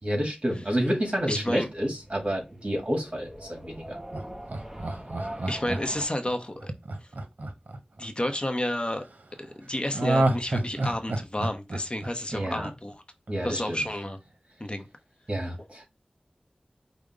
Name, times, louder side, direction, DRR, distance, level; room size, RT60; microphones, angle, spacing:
voice 1, 0.0-4.0 12.3-12.7 13.3-13.8 15.3-15.9, equal, 45° right, 1.8 m, -29 dB
sound 1, 1.0-6.1, right 1 dB, 15° right, 0.9 m, -43 dB
voice 2, 1.3-1.7 5.5-6.7 7.0-7.1 8.0-9.0 9.4-13.0 13.4-14.2 14.6-14.9, left 1 dB, 35° left, 0.7 m, -30 dB
Laughter, 4.1-8.4 9.9-12.9 13.3-13.4, right 2 dB, 80° right, 0.7 m, -29 dB
5.1 x 2.1 x 4.8 m
wide cardioid pair, 40°, 3 cm